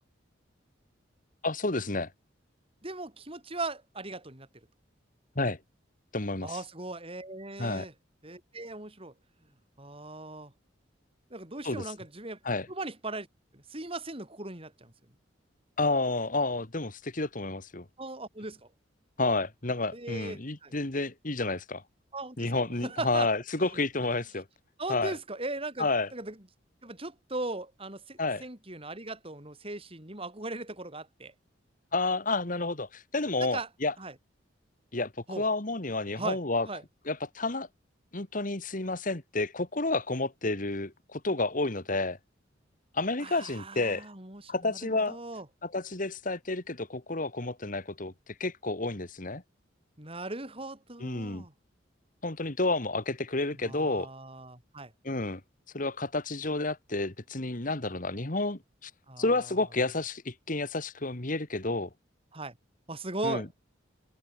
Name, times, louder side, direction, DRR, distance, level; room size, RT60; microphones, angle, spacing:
voice 1, 1.4-2.1 5.4-5.6 6.1-6.6 7.6-7.9 11.6-11.8 12.4-12.7 15.8-17.9 19.2-21.8 22.4-24.4 24.9-25.1 25.8-26.1 28.2-28.4 31.9-33.9 34.9-35.1 35.4-36.7 37.1-37.7 38.1-42.2 42.9-44.1 44.5-45.2 45.6-48.1 48.4-49.4 51.0-51.4 52.2-54.1 55.0-55.4 55.7-58.9 59.2-61.9 63.2-63.5, left 2 dB, 45° left, 2.0 m, -30 dB
voice 2, 2.8-4.5 6.4-7.9 8.2-9.1 9.8-10.5 11.3-12.4 12.7-13.3 13.5-14.9 18.0-18.7 19.9-20.7 22.1-22.5 22.8-23.3 24.8-26.4 26.8-31.3 33.4-33.7 34.0-34.2 35.3-35.5 36.2-36.4 36.6-36.8 43.2-45.5 50.0-51.5 53.5-54.9 59.1-59.4 62.3-62.5 62.9-63.5, right 2 dB, 30° right, 5.1 m, -38 dB
head